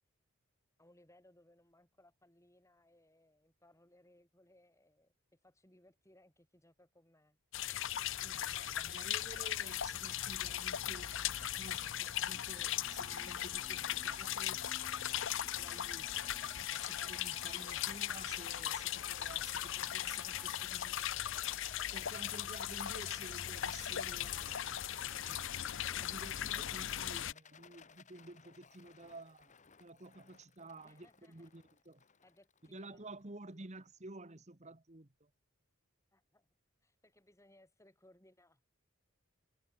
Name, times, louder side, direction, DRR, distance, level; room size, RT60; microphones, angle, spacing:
voice 1, 0.8-7.4 30.8-31.6 32.2-33.0 33.6-33.7 36.1-36.5 36.8-38.7, left 1 dB, 15° left, 7.1 m, -66 dB
sound 1, 7.5-27.3, left 11 dB, 60° left, 0.6 m, -38 dB
voice 2, 8.2-14.6 15.0-16.1 16.4-21.2 21.9-24.8 25.2-29.5 29.8-32.0 32.7-35.3, right 2 dB, 30° right, 1.5 m, -52 dB
sound 2, 9.4-20.7, right 2 dB, 15° right, 1.9 m, -58 dB
Rattle, 16.0-33.4, left 6 dB, 35° left, 1.4 m, -58 dB
head